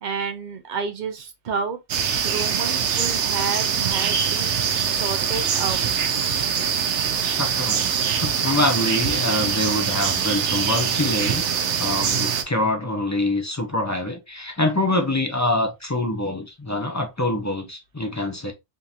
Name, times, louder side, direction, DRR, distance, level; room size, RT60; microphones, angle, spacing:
voice 1, 0.0-1.8 2.2-5.9, right 5 dB, 50° right, 0.6 m, -30 dB
sound 1, 1.9-12.4, right 7 dB, 80° right, 0.9 m, -23 dB
voice 2, 7.4-11.4 11.8-18.5, left 1 dB, 30° left, 0.3 m, -25 dB
3.7 x 2.5 x 2.7 m
omnidirectional pair, 1.2 m